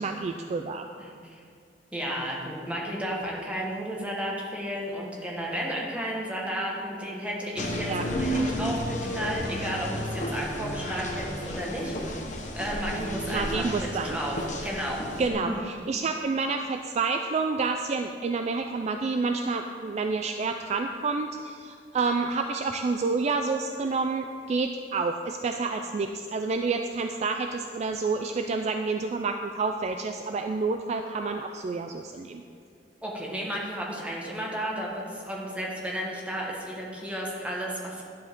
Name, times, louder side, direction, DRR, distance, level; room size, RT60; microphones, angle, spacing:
voice 1, 0.0-0.9 7.9-8.0 13.3-14.2 15.2-32.4, right 4 dB, 40° right, 5 dB, 0.3 m, -29 dB
voice 2, 1.0-1.4 1.9-12.2 12.5-14.4 14.6-15.6 33.0-38.0, equal, 10° right, -3 dB, 1.4 m, -33 dB
sound 1, 7.6-15.3, equal, 45° left, 1.1 m, -32 dB
11.0 x 7.5 x 3.7 m, 2.4 s
head